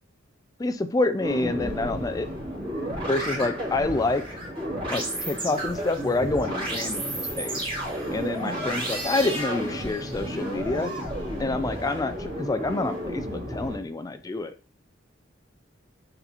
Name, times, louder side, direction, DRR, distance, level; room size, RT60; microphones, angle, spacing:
voice 1, 0.6-2.3 3.1-4.2 4.9-7.6 8.1-10.9 11.4-14.5, left 2 dB, 20° left, 10 dB, 0.4 m, -27 dB
sound 1, 1.2-13.8, right 1 dB, 30° right, 3.0 m, -32 dB
9.4 x 4.0 x 2.9 m, 0.36 s
head